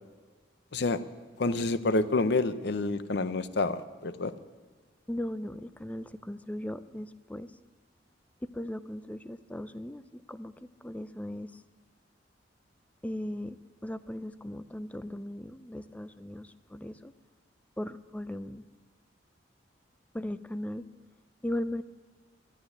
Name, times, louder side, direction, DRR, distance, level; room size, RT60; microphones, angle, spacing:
voice 1, 1.4-4.3, left 3 dB, 65° left, 12 dB, 0.7 m, -28 dB
voice 2, 5.1-7.5 8.4-11.6 13.0-13.6 13.8-17.1 17.8-18.6 20.1-20.8 21.4-21.8, left 1 dB, 10° left, 13 dB, 0.4 m, -38 dB
12.0 x 10.0 x 9.9 m, 1.4 s
head